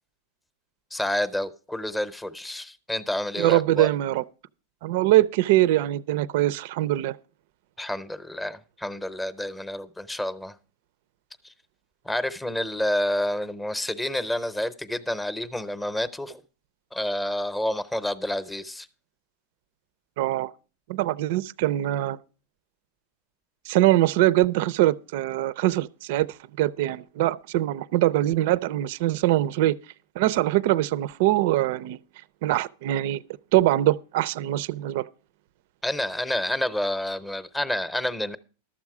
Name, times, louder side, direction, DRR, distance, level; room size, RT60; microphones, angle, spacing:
voice 1, 0.9-3.9 7.8-10.6 12.0-16.4 16.9-18.9 35.8-38.4, left 1 dB, 5° left, 0.7 m, -29 dB
voice 2, 3.4-4.2 4.8-7.2 20.2-20.5 20.9-22.2 23.7-29.8 30.2-32.0 32.4-33.2 33.5-35.1, right 15 dB, 60° right, 0.4 m, -23 dB
12.5 x 7.3 x 4.8 m
supercardioid pair, 130°, 0 cm